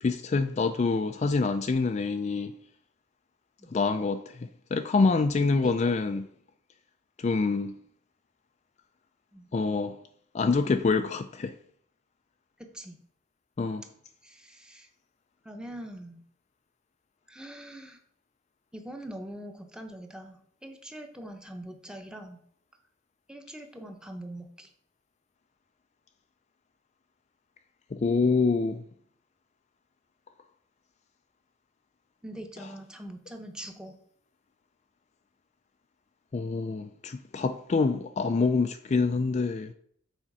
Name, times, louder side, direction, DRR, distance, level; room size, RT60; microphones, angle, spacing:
voice 1, 0.0-2.5 3.7-4.4 4.7-6.3 7.2-7.7 9.5-10.0 10.3-11.5 13.6-13.8 27.9-28.8 36.3-39.7, left 4 dB, 35° left, 0.3 m, -26 dB
voice 2, 5.6-6.2 9.3-9.5 12.6-13.0 14.2-14.9 15.4-16.2 17.3-18.0 18.7-22.4 23.3-24.7 32.2-34.0, right 1 dB, 5° right, 0.8 m, -43 dB
7.2 x 4.2 x 5.5 m
head